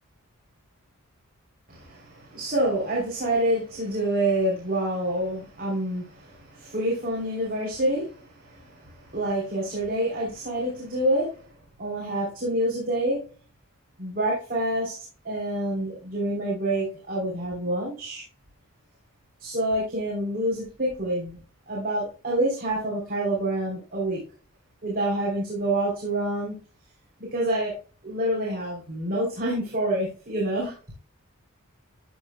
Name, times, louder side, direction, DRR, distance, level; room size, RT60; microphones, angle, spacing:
voice 1, 1.7-11.5 11.8-13.2 14.0-15.0 15.2-18.2 19.4-21.4 21.7-24.2 24.8-26.5 27.2-27.8 28.0-30.7, right 1 dB, 40° right, -4 dB, 3.2 m, -27 dB
13.0 x 6.5 x 2.2 m, 0.36 s
head